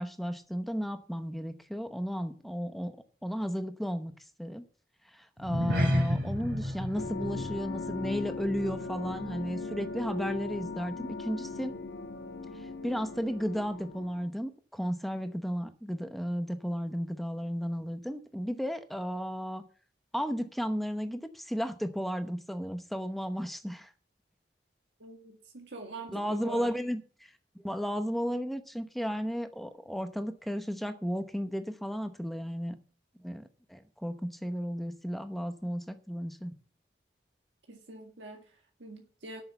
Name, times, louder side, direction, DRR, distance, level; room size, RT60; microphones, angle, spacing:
voice 1, 0.0-3.0 3.2-4.1 4.4-4.7 5.1-11.8 12.5-19.6 20.1-23.9 26.1-32.7 33.2-36.5, equal, ahead, 8 dB, 0.9 m, -34 dB
sound 1, 5.4-10.0 10.3-10.6 11.0-11.1, left 1 dB, 60° right, 3.1 m, -33 dB
sound 2, 7.0-14.3, left 4 dB, 80° left, 1.4 m, -39 dB
voice 2, 25.0-26.8 37.7-39.4, right 3 dB, 90° right, 2 dB, 1.8 m, -45 dB
12.0 x 6.6 x 6.9 m, 0.42 s
head